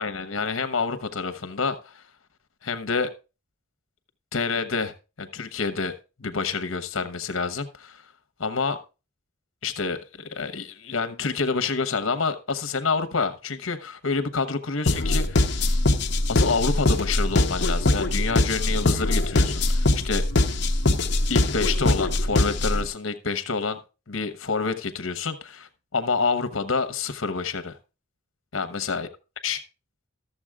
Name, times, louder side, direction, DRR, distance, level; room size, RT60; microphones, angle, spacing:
voice 1, 0.0-2.0 2.6-3.1 4.3-5.9 6.2-8.0 8.4-8.8 9.6-15.4 16.3-20.2 21.3-23.8 24.1-27.7 28.5-29.1 29.4-29.6, left 4 dB, 75° left, 11 dB, 1.0 m, -28 dB
sound 1, 14.9-22.9, left 2 dB, 55° left, 0.8 m, -22 dB
13.5 x 7.1 x 3.6 m, 0.31 s
head